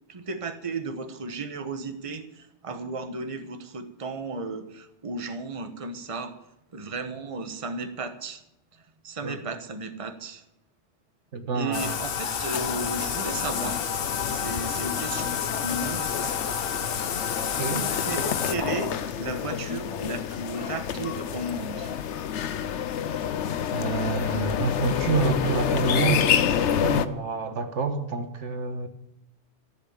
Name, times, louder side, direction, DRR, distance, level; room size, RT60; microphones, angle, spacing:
voice 1, 0.1-6.3 6.7-8.4 8.7-10.4 11.5-13.8 14.3-16.3 18.0-21.9, right 3 dB, 30° right, 9 dB, 1.1 m, -34 dB
voice 2, 11.3-12.0 17.6-17.9 23.7-28.9, right 4 dB, 85° right, 7 dB, 1.7 m, -28 dB
Bathtub (filling or washing), 11.7-18.6, left 7 dB, 55° left, 1.0 m, -30 dB
sound 1, 12.5-27.1, left 8 dB, 80° left, 1.0 m, -29 dB
14.0 x 8.0 x 8.8 m, 0.85 s
omnidirectional pair, 1.2 m